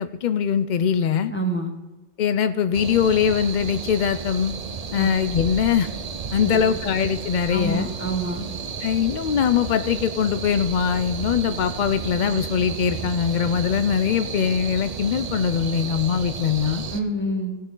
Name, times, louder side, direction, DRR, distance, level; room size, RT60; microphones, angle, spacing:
voice 1, 0.0-1.3 2.2-4.5 4.9-5.9 6.3-7.9 8.8-16.8, left 7 dB, 80° left, 11 dB, 0.4 m, -22 dB
voice 2, 1.3-1.7 5.0-5.1 6.4-6.6 7.5-8.5 16.9-17.6, right 1 dB, 10° left, 3 dB, 1.3 m, -27 dB
sound 1, 2.7-17.0, right 5 dB, 40° right, 0.5 m, -33 dB
17.5 x 6.6 x 3.7 m, 1.1 s
omnidirectional pair, 1.3 m